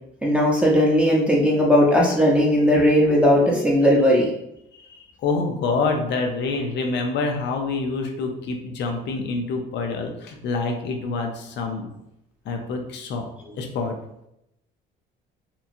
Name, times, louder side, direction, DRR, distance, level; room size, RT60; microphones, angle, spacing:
voice 1, 0.2-4.3, equal, 5° right, -5 dB, 0.7 m, -17 dB
voice 2, 4.7-11.9 12.5-13.3 13.5-13.9, left 3 dB, 60° left, 3 dB, 0.6 m, -27 dB
2.9 x 2.3 x 2.6 m, 0.81 s
supercardioid pair, 80°, 20 cm